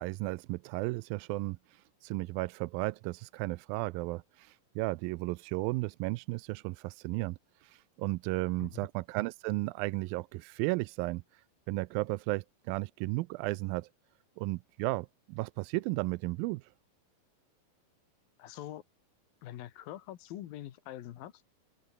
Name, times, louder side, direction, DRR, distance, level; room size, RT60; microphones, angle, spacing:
voice 1, 0.0-11.4 11.7-13.9 14.4-16.7, right 22 dB, 85° right, 2.3 m, -34 dB
voice 2, 18.4-18.8 19.4-21.3, left 13 dB, 80° left, 3.1 m, -44 dB
open air
omnidirectional pair, 4.1 m